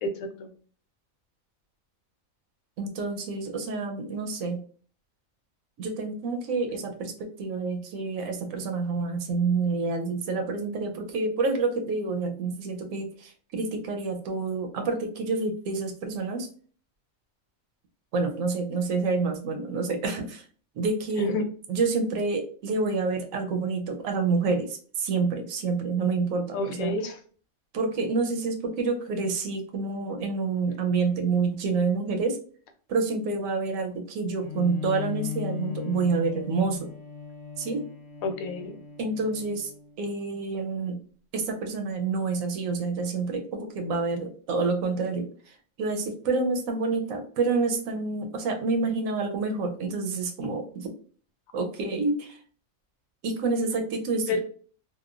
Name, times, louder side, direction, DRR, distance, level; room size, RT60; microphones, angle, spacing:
voice 1, 0.0-0.5 21.2-21.5 26.5-27.2 38.2-38.7 54.3-54.4, left 2 dB, 85° left, 6 dB, 1.0 m, -29 dB
voice 2, 2.8-4.6 5.8-7.1 7.4-16.5 18.1-20.4 20.8-21.3 21.7-27.0 27.7-32.4 32.9-36.9 37.6-37.8 39.0-39.7 40.0-41.0 41.3-45.3 45.8-50.9 51.5-52.4 53.2-54.4, right 4 dB, 75° right, 4 dB, 1.0 m, -28 dB
Bowed string instrument, 34.4-40.0, left 8 dB, 55° left, 0.8 m, -38 dB
2.9 x 2.2 x 2.3 m, 0.43 s
omnidirectional pair, 1.4 m